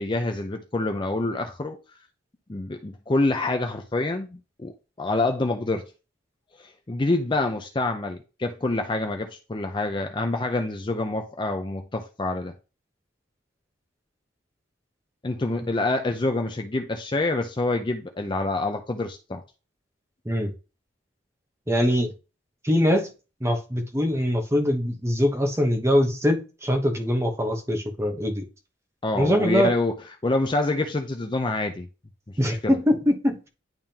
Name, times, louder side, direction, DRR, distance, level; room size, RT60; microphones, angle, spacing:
voice 1, 0.0-1.8 2.5-4.7 5.0-5.9 6.6-12.5 15.2-19.4 29.0-29.9 30.2-31.9 32.6-32.7, left 2 dB, 25° left, 0.5 m, -26 dB
voice 2, 21.7-22.1 22.6-23.1 23.4-28.4 29.1-29.7 32.4-33.4, equal, 15° right, 1.0 m, -23 dB
10.5 x 3.6 x 2.9 m
head